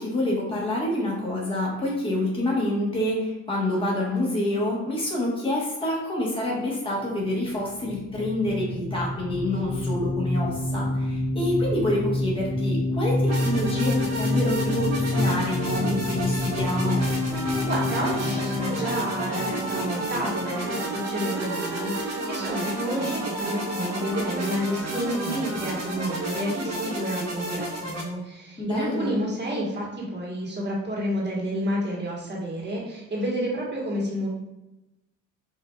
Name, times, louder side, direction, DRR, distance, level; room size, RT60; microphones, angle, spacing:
voice 1, 0.0-17.0 28.6-29.2, left 1 dB, 15° left, -4 dB, 1.3 m, -27 dB
sound 1, 7.8-20.3, left 2 dB, 50° left, 0.8 m, -28 dB
sound 2, 13.2-28.0, right 1 dB, 60° right, 1.1 m, -32 dB
sound 3, 17.3-26.1, right 2 dB, 10° right, 0.4 m, -36 dB
voice 2, 17.4-34.3, equal, 35° right, -3 dB, 1.4 m, -30 dB
5.5 x 2.6 x 2.3 m, 0.95 s
cardioid pair, 90°, 30 cm